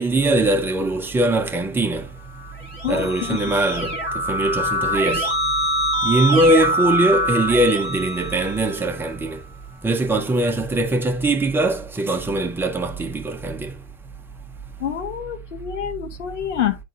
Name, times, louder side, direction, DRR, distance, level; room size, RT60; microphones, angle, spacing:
voice 1, 0.0-2.0 2.9-3.9 4.3-5.3 6.0-9.4 9.8-13.7, right 1 dB, 5° right, 0.7 m, -21 dB
Keyboard (musical), 2.4-9.1, right 1 dB, 30° left, 1.9 m, -24 dB
voice 2, 2.8-3.4 14.8-16.8, left 10 dB, 60° left, 1.2 m, -27 dB
10.5 x 3.8 x 2.4 m
figure-of-eight pair, 90°, 39 cm